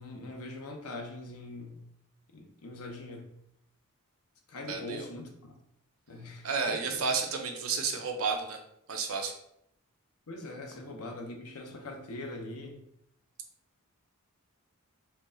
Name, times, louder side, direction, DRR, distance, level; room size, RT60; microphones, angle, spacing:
voice 1, 0.0-1.8 2.3-3.3 4.5-5.5 6.1-6.8 10.3-12.8, left 2 dB, 80° left, 2 dB, 0.9 m, -42 dB
voice 2, 4.7-5.1 6.4-8.6 8.9-9.3, right 5 dB, 70° right, 3 dB, 0.7 m, -31 dB
4.4 x 2.3 x 3.9 m, 0.75 s
head